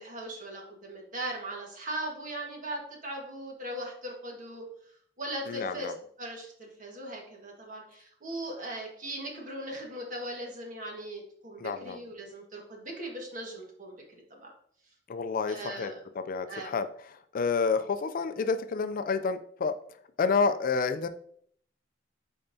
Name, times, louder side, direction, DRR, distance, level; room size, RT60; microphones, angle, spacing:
voice 1, 0.0-4.6 5.2-5.9 6.2-14.0 14.3-14.5 15.5-16.0 16.5-16.8, right 1 dB, 40° right, 0 dB, 1.6 m, -39 dB
voice 2, 5.5-5.9 11.6-12.0 15.1-19.8 20.2-21.1, left 5 dB, 45° left, 10 dB, 0.4 m, -29 dB
8.9 x 4.4 x 2.7 m, 0.63 s
head